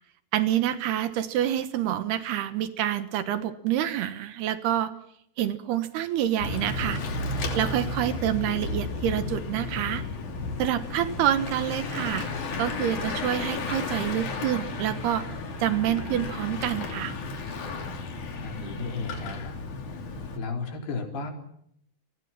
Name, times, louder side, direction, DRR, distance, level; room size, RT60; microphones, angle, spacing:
voice 1, 0.3-4.9 5.4-7.0 7.6-10.0 10.6-12.3 12.6-15.2 15.6-17.1, right 11 dB, 75° right, 11 dB, 3.2 m, -27 dB
Bicycle / Mechanisms, 6.4-20.4, left 3 dB, 50° left, 4.1 m, -33 dB
voice 2, 18.4-19.6 20.4-21.3, left 4 dB, 70° left, 4 dB, 5.9 m, -34 dB
30.0 x 21.5 x 6.0 m, 0.72 s
omnidirectional pair, 4.8 m